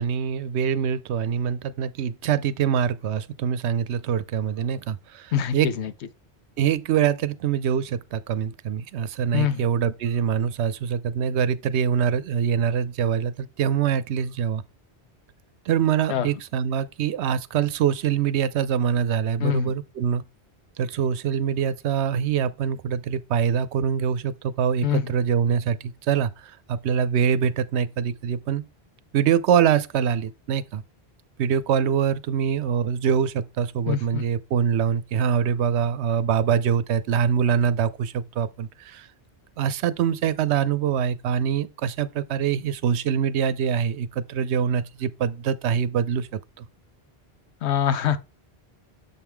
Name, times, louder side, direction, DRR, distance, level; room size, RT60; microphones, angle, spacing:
voice 1, 0.0-5.7 6.6-14.6 15.7-20.3 20.8-28.6 29.1-30.8 31.4-39.1 39.6-46.3 46.6-46.7, right 8 dB, 85° right, 0.9 m, -24 dB
voice 2, 5.3-5.9 9.3-9.6 16.1-16.3 19.4-19.7 24.8-25.1 33.9-34.2 47.6-48.2, left 9 dB, 85° left, 1.0 m, -24 dB
7.2 x 4.5 x 3.5 m
omnidirectional pair, 1.1 m